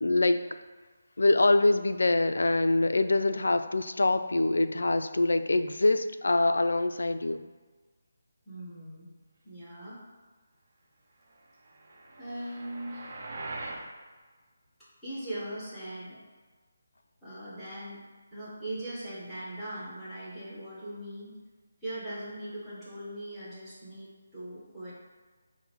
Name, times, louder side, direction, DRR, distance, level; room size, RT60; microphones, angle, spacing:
voice 1, 0.0-0.5 1.2-7.5, left 2 dB, 85° left, 10 dB, 0.3 m, -24 dB
voice 2, 8.4-9.1 9.4-10.0 12.2-13.2 15.0-16.2 17.2-18.0 18.3-21.3 21.8-24.9, right 1 dB, ahead, -13 dB, 1.3 m, -40 dB
sound 1, 11.6-13.9, right 2 dB, 45° right, 0.7 m, -41 dB
5.3 x 2.1 x 4.5 m, 1.4 s
figure-of-eight pair, 165°, 0 cm